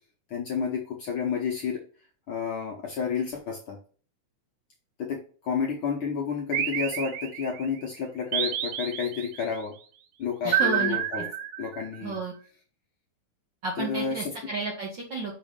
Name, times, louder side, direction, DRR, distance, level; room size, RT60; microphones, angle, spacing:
voice 1, 0.3-1.8 2.3-3.8 5.0-9.7 10.2-11.3 11.6-12.2 13.8-14.3, left 6 dB, 60° left, 0 dB, 1.4 m, -30 dB
sound 1, 6.5-7.7 8.3-9.5 10.5-12.0, right 9 dB, 85° right, 2.0 m, -29 dB
voice 2, 10.4-11.0 12.0-12.3 13.6-15.4, right 3 dB, 60° right, -1 dB, 1.2 m, -32 dB
6.2 x 3.1 x 5.1 m, 0.41 s
omnidirectional pair, 3.3 m